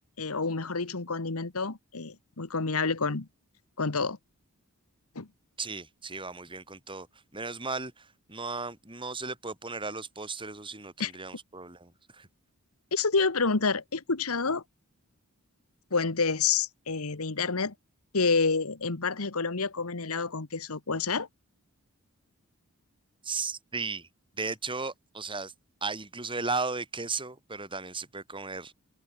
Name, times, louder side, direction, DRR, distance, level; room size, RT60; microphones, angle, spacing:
voice 1, 0.2-3.3 3.8-4.2 5.1-5.3 11.0-11.1 12.9-14.6 15.9-17.7 18.1-21.3, left 4 dB, 70° left, 1.4 m, -28 dB
voice 2, 5.6-12.3 23.2-24.1 24.3-25.5 25.8-28.7, right 4 dB, 25° right, 5.3 m, -35 dB
head